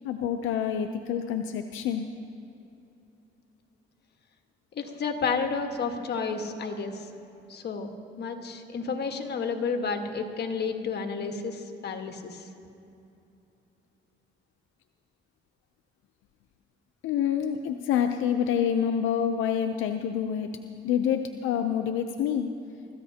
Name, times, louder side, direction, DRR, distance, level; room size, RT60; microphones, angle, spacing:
voice 1, 0.0-2.1 17.0-20.5 20.8-22.5, left 8 dB, 90° left, 6 dB, 0.6 m, -27 dB
voice 2, 4.7-7.0 7.5-7.9 8.2-12.5, left 5 dB, 55° left, 5 dB, 1.4 m, -31 dB
25.0 x 14.0 x 2.8 m, 2.8 s
cardioid pair, 90°, 20 cm